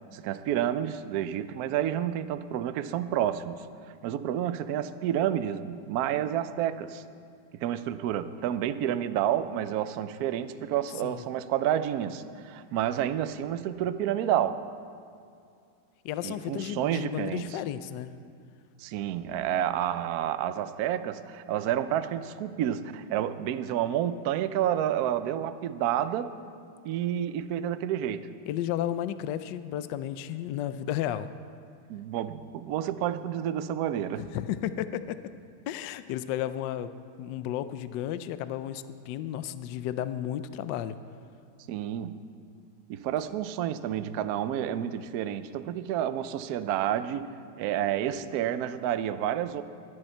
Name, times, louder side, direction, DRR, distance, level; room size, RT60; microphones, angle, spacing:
voice 1, 0.1-3.6 4.0-7.0 7.5-14.6 16.2-17.6 18.8-26.3 26.8-28.3 31.9-34.3 41.7-42.2 42.9-47.3 47.6-49.6, right 10 dB, 85° right, 12 dB, 0.8 m, -29 dB
voice 2, 16.0-18.2 28.5-31.3 34.2-35.2 35.7-36.9 37.2-41.0, left 11 dB, 75° left, 12 dB, 1.1 m, -33 dB
23.0 x 9.9 x 4.4 m, 2.4 s
omnidirectional pair, 2.3 m